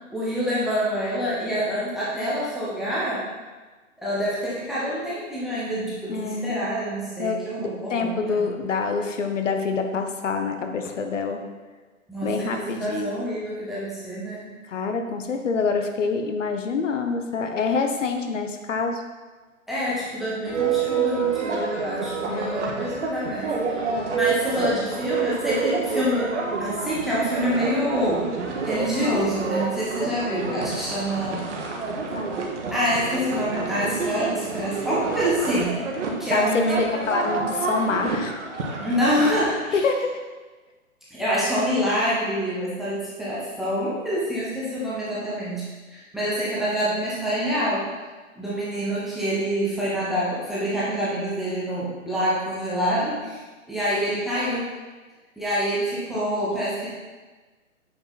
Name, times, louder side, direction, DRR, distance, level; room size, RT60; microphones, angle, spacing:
voice 1, 0.1-3.2 4.0-8.5 12.1-14.5 19.7-26.3 26.6-31.5 32.7-35.8 36.2-36.7 38.8-39.8 41.1-45.6 45.9-47.9 48.4-53.4 53.7-54.7 55.4-56.9, equal, ahead, -9 dB, 0.8 m, -26 dB
voice 2, 6.1-6.7 7.2-11.4 12.2-13.3 14.7-19.0 22.3-22.7 32.1-32.3 36.3-38.4 39.7-40.1 56.1-56.4, left 4 dB, 60° left, 5 dB, 1.0 m, -26 dB
sound 1, 20.4-39.4, right 5 dB, 55° right, 1.5 m, -28 dB
8.6 x 5.4 x 4.1 m, 1.3 s
hypercardioid pair, 145°, 42 cm